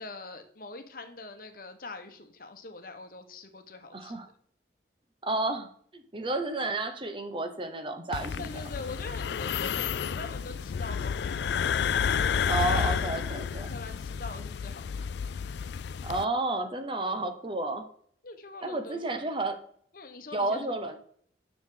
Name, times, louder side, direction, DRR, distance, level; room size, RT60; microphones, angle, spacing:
voice 1, 0.0-4.2 8.4-11.6 12.0-13.0 13.7-14.9 15.2-15.3 18.2-19.3 19.9-21.0, left 3 dB, 55° left, 7 dB, 1.1 m, -43 dB
voice 2, 3.9-4.3 5.2-8.5 12.5-13.7 16.0-17.9 18.6-19.6 20.3-21.0, right 2 dB, 30° right, 7 dB, 0.9 m, -31 dB
sound 1, 8.1-16.2, left 7 dB, 75° left, 0.4 m, -31 dB
10.5 x 6.3 x 3.8 m, 0.62 s
head